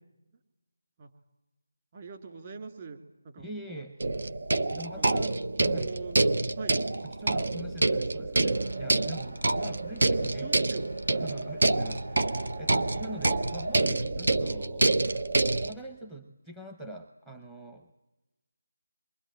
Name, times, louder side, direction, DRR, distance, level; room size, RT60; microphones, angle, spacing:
voice 1, 1.9-3.8 4.8-5.3 5.8-6.8 10.2-10.9, right 5 dB, 35° right, 5 dB, 2.9 m, -44 dB
voice 2, 3.4-4.0 4.7-5.4 5.6-5.9 7.0-10.5 11.1-15.1 15.6-17.9, right 1 dB, 5° right, 2 dB, 0.9 m, -44 dB
sound 1, 4.0-15.7, right 2 dB, 70° right, 1.2 m, -27 dB
sound 2, 8.4-13.9, equal, 90° right, 6.5 m, -53 dB
27.5 x 23.5 x 9.1 m, 1.0 s
figure-of-eight pair, 165°, 0 cm